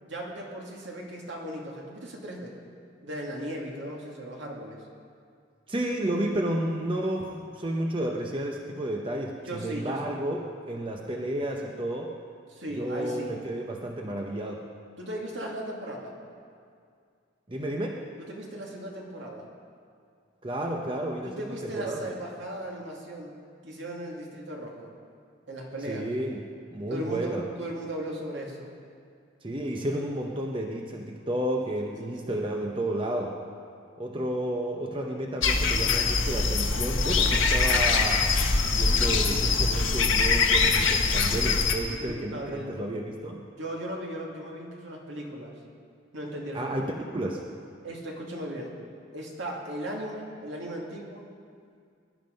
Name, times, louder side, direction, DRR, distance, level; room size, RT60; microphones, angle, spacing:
voice 1, 0.0-2.5 3.0-4.8 9.4-10.2 12.5-13.3 15.0-16.1 18.3-19.5 21.2-23.3 23.6-24.9 25.5-26.0 26.9-28.7 31.6-31.7 32.0-32.4 41.8-42.8 43.6-45.5 46.1-46.9 47.8-48.8 49.1-51.3, right 1 dB, 70° right, -1 dB, 2.4 m, -37 dB
voice 2, 5.7-12.1 12.7-14.7 17.5-18.0 20.4-22.0 25.9-26.4 26.7-27.5 29.4-33.4 34.0-38.3 38.7-43.5 46.5-46.8 47.1-47.4, right 1 dB, 25° right, 1 dB, 0.8 m, -31 dB
sound 1, 35.4-41.7, left 4 dB, 80° left, 1.3 m, -23 dB
18.5 x 11.0 x 5.3 m, 2.3 s
head